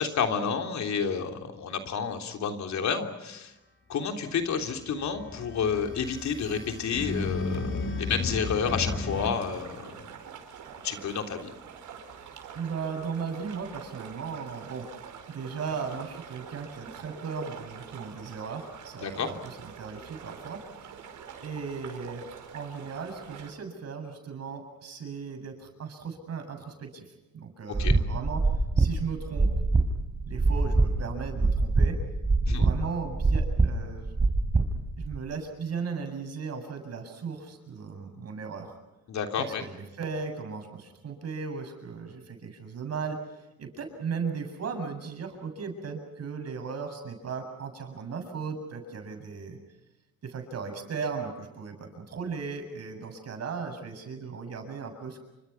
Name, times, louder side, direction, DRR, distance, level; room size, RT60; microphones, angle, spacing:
voice 1, 0.0-3.5 3.9-10.0 10.8-11.5 19.0-19.3 27.8-27.9 32.5-32.7 39.1-39.6, left 6 dB, 65° left, 4 dB, 3.4 m, -30 dB
sound 1, 4.5-9.3, left 3 dB, 40° left, 4.4 m, -33 dB
sound 2, 9.1-23.5, right 7 dB, 75° right, 5.5 m, -45 dB
voice 2, 12.5-14.9 15.3-20.6 21.4-22.3 22.5-27.0 27.3-28.4 28.8-29.5 30.3-32.0 32.4-34.1 35.0-38.7 39.4-43.2 43.6-49.6 50.2-55.2, right 5 dB, 55° right, 5 dB, 7.6 m, -36 dB
sound 3, 27.7-35.2, right 3 dB, 25° right, 4.1 m, -24 dB
29.0 x 25.5 x 5.9 m, 1.0 s
cardioid pair, 90°, 30 cm